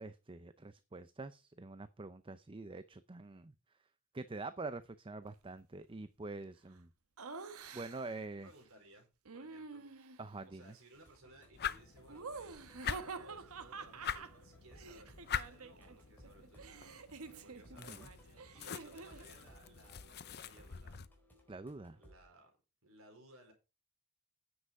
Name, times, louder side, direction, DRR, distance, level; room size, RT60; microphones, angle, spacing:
voice 1, 0.0-3.5 4.1-6.9 7.7-8.5 10.2-10.7 17.8-18.1 21.5-22.0, right 3 dB, 25° right, 0.6 m, -46 dB
Laughter, 7.2-8.2 9.2-10.3 12.1-16.0 16.2-19.3, right 4 dB, 85° right, 1.2 m, -48 dB
voice 2, 8.4-9.1 9.3-9.8 10.4-15.1 15.4-21.0 21.9-22.5 22.8-23.5, right 1 dB, 65° right, 4.6 m, -61 dB
sound 1, 10.9-22.2, equal, 10° left, 4.2 m, -63 dB
sound 2, 11.5-21.1, left 8 dB, 50° left, 0.7 m, -45 dB
9.9 x 7.9 x 4.7 m
head